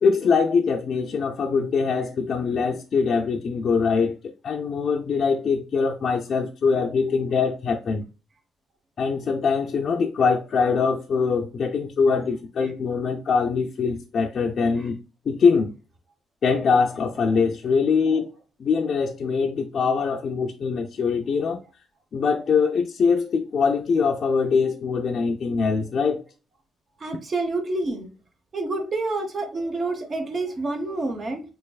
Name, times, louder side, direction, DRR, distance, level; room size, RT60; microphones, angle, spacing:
voice 1, 0.0-8.1 9.0-15.0 15.3-15.7 16.4-18.3 18.6-21.6 22.1-26.2, left 5 dB, 55° left, 0.4 m, -23 dB
voice 2, 27.0-28.1 28.5-31.4, right 2 dB, 40° right, 1.0 m, -28 dB
3.9 x 3.2 x 2.3 m
cardioid pair, 90°, 0 cm